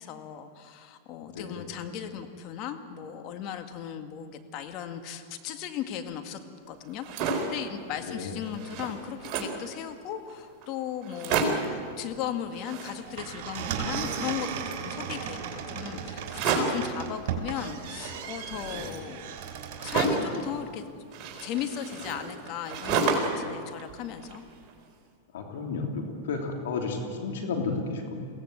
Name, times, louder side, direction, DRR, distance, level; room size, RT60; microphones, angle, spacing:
voice 1, 0.0-6.4 6.7-19.4 19.8-20.9 21.4-24.4, left 9 dB, 45° left, 6 dB, 2.0 m, -37 dB
voice 2, 1.3-1.7 8.1-8.3 18.7-18.9 25.3-28.3, left 4 dB, 75° left, 2 dB, 3.3 m, -33 dB
sound 1, 6.9-7.6 8.1-8.2 8.4-9.6 10.3-10.4 10.6-10.7 11.0-11.8 12.5-13.3 13.5-14.9 16.2-16.9 17.8-20.4 21.1-23.5 23.8-24.7, right 4 dB, 40° right, 4.4 m, -31 dB
sound 2, 13.0-20.6, right 7 dB, 55° right, 3.5 m, -36 dB
22.5 x 17.0 x 8.2 m, 2.2 s
hypercardioid pair, 110°, 0 cm